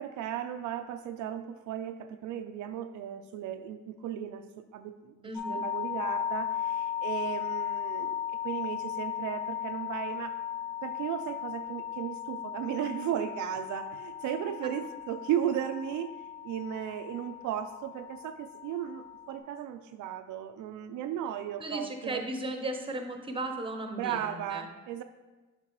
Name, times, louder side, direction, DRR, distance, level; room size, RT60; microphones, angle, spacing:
voice 1, 0.0-5.2 5.4-10.4 10.8-16.1 16.4-22.2 23.9-25.0, right 10 dB, 80° right, 8 dB, 0.4 m, -35 dB
voice 2, 5.2-5.6 21.6-24.7, right 2 dB, 15° right, 5 dB, 0.8 m, -36 dB
sound 1, 5.3-19.4, left 10 dB, 85° left, 1.3 m, -36 dB
7.4 x 5.3 x 3.0 m, 1.2 s
cardioid pair, 90°, 30 cm